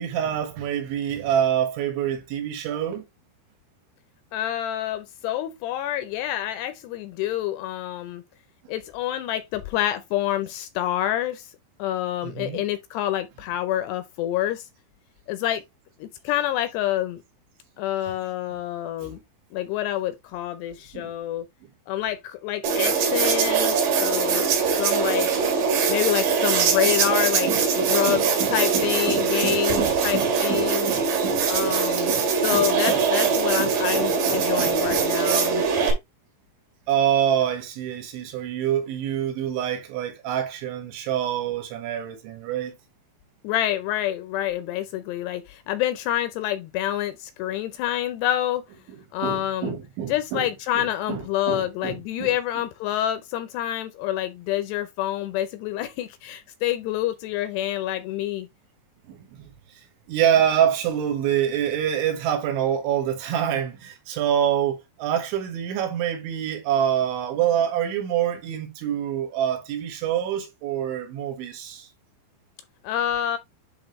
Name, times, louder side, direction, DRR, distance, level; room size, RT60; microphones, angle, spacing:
voice 1, 0.0-3.0 12.2-12.6 19.0-19.1 20.9-21.1 27.5-35.0 36.9-42.7 49.2-50.5 50.8-52.3 59.1-59.5 60.1-71.9, right 9 dB, 85° right, 3.9 m, -27 dB
voice 2, 4.3-8.2 8.7-11.5 11.8-14.7 15.3-15.6 16.0-17.2 17.8-19.2 19.5-21.5 21.9-24.5 24.8-25.3 25.9-30.9 31.5-32.1 32.4-35.6 43.4-48.6 49.1-49.8 50.1-58.5 72.8-73.4, left 12 dB, 80° left, 2.5 m, -27 dB
sound 1, 22.6-35.9, right 6 dB, 55° right, 2.9 m, -22 dB
10.0 x 3.7 x 3.1 m
omnidirectional pair, 5.2 m